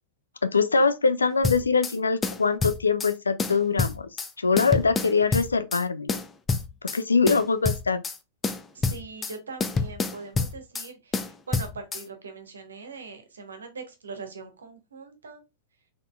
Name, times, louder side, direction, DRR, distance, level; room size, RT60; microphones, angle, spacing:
voice 1, 0.4-4.1 4.4-6.2 6.8-8.0, left 4 dB, 75° left, 0.4 m, -23 dB
sound 1, 1.4-2.0 2.2-3.1 3.4-4.3 4.6-5.8 6.1-7.0 7.3-8.2 8.4-9.3 9.6-10.9 11.1-12.0, left 4 dB, 15° left, 0.5 m, -28 dB
voice 2, 8.7-15.4, right 4 dB, 70° right, 0.9 m, -41 dB
4.0 x 3.6 x 2.3 m
figure-of-eight pair, 95°, 0 cm